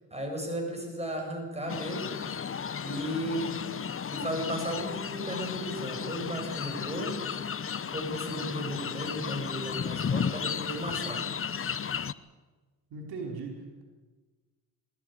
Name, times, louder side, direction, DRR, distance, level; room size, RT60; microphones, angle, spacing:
voice 1, 0.1-2.2 2.8-3.5 4.1-7.3 7.9-11.2, equal, 15° right, 2 dB, 7.6 m, -35 dB
sound 1, 1.7-12.1, left 7 dB, 35° left, 0.8 m, -34 dB
voice 2, 12.9-13.8, right 4 dB, 80° right, 1 dB, 4.6 m, -38 dB
20.5 x 14.5 x 9.5 m, 1.3 s
cardioid pair, 75°, 38 cm